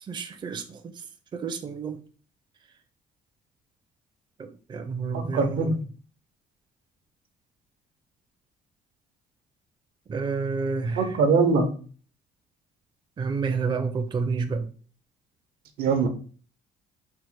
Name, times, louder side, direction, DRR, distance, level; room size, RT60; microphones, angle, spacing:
voice 1, 0.1-0.8 1.3-2.0 4.4-5.7 10.1-11.1 13.2-14.7, right 4 dB, 30° right, 7 dB, 0.5 m, -29 dB
voice 2, 5.1-5.8 11.0-11.7 15.8-16.1, right 4 dB, 80° right, 7 dB, 0.8 m, -22 dB
4.5 x 2.1 x 4.5 m, 0.41 s
cardioid pair, 100°, 16 cm